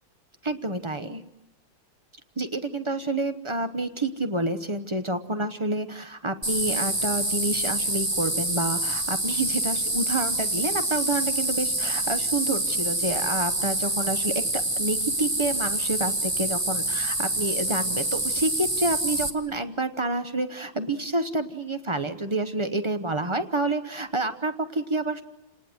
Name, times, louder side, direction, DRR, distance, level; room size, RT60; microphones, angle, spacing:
voice 1, 0.4-1.2 2.4-25.2, right 2 dB, 30° right, 9 dB, 0.5 m, -28 dB
sound 1, 6.4-19.3, right 1 dB, 15° right, 1.2 m, -27 dB
29.0 x 19.0 x 7.9 m, 0.96 s
omnidirectional pair, 2.1 m